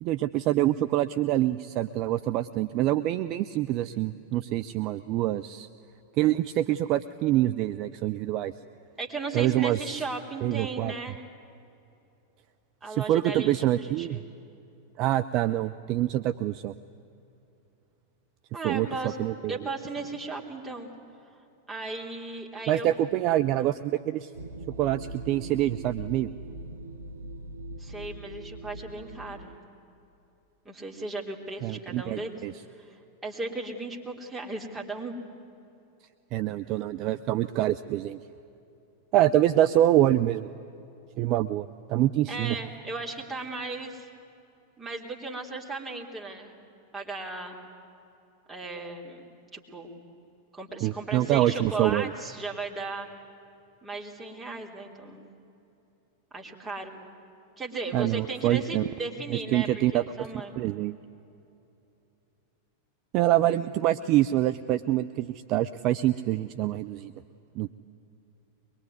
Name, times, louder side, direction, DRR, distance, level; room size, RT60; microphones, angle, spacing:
voice 1, 0.0-5.7 6.1-8.5 9.3-10.0 10.4-10.9 12.9-14.2 15.0-16.7 18.6-19.6 22.7-24.3 24.8-26.3 31.6-32.5 36.3-38.2 39.1-40.5 41.2-42.6 50.8-52.1 57.9-58.9 59.3-60.0 60.3-61.0 63.1-67.1 67.5-67.7, right 13 dB, 40° right, 11 dB, 0.6 m, -26 dB
voice 2, 9.0-11.2 12.8-14.2 18.5-19.2 19.5-20.9 21.7-22.9 27.8-29.5 30.7-32.4 32.8-35.2 42.3-44.1 44.8-46.6 46.9-47.6 48.5-49.2 49.5-49.9 50.5-53.1 53.8-55.3 56.3-57.0 57.6-60.5, right 3 dB, 15° right, -1 dB, 3.6 m, -36 dB
sound 1, 24.3-29.6, right 2 dB, 80° right, 1.0 m, -41 dB
23.0 x 22.0 x 9.6 m, 2.8 s
figure-of-eight pair, 90°, 0 cm